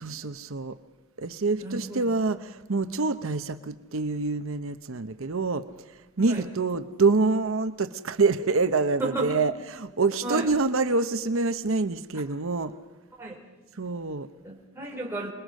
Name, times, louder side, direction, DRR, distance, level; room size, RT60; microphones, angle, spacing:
voice 1, 0.0-0.8 1.2-12.7 13.8-14.3, right 3 dB, 65° right, 11 dB, 0.8 m, -26 dB
voice 2, 1.6-2.1 6.3-6.5 9.0-9.4 10.2-10.5 13.2-13.4 14.4-15.3, right 2 dB, 10° right, -2 dB, 4.7 m, -33 dB
27.5 x 21.0 x 6.5 m, 1.1 s
head